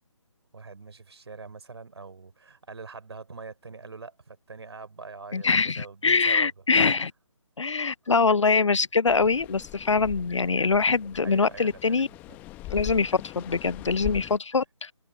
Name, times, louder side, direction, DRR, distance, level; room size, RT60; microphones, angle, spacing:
voice 1, 0.5-6.5 11.2-12.4, right 4 dB, 55° right, 4.2 m, -43 dB
voice 2, 5.3-7.1 7.6-12.1 12.7-14.9, left 4 dB, 65° left, 0.5 m, -23 dB
sound 1, 9.1-14.4, left 18 dB, 10° left, 1.1 m, -41 dB
figure-of-eight pair, 150°, 16 cm